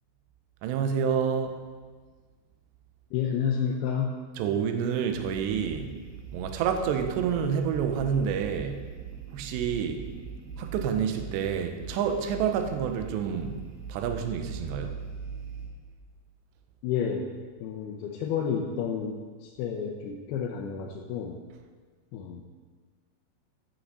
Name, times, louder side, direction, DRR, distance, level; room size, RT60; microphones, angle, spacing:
voice 1, 0.6-1.6 4.4-6.0 6.3-8.9 9.3-10.1 10.6-13.6 13.9-15.0, right 7 dB, 80° right, 6 dB, 2.8 m, -28 dB
voice 2, 3.1-4.2 16.8-17.3 17.6-21.4 22.1-22.5, left 7 dB, 80° left, 1 dB, 2.3 m, -30 dB
sound 1, 5.1-15.7, right 6 dB, 60° right, 3.2 m, -41 dB
14.0 x 9.9 x 4.1 m, 1.5 s
omnidirectional pair, 5.5 m